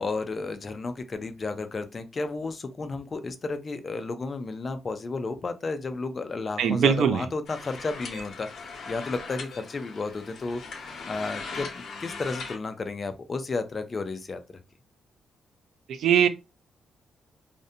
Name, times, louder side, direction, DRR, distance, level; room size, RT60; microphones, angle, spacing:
voice 1, 0.0-10.6 11.0-14.6, left 3 dB, 35° left, 0.4 m, -32 dB
voice 2, 6.6-7.3 15.9-16.3, right 8 dB, 75° right, 0.4 m, -21 dB
sound 1, 7.5-12.6, left 4 dB, 60° left, 0.8 m, -39 dB
2.5 x 2.1 x 2.6 m
cardioid pair, 115°, 0 cm